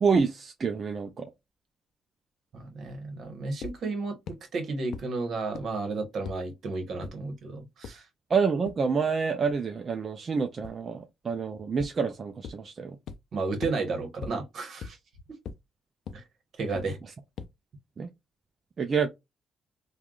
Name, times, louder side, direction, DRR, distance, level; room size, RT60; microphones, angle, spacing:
voice 1, 0.0-1.3 8.3-13.0 18.0-18.1 18.8-19.1, right 5 dB, 40° right, 0.5 m, -27 dB
voice 2, 2.5-8.0 13.3-15.0 16.1-16.2 16.6-17.0, right 3 dB, 60° right, 1.2 m, -33 dB
sound 1, 3.6-3.7 4.3-4.4 4.9-5.0 5.5-5.6 6.3-6.4 7.0-7.1 7.8-7.9 8.7-8.8 10.6-10.7 11.8-11.9 12.4-12.5 13.1-13.2 13.6-13.7 14.2-14.3 14.8-14.9 15.5-15.6 16.1-16.2 16.8-16.9 17.4-17.5, left 6 dB, 70° left, 0.4 m, -37 dB
3.3 x 2.3 x 2.4 m
cardioid pair, 90°, 0 cm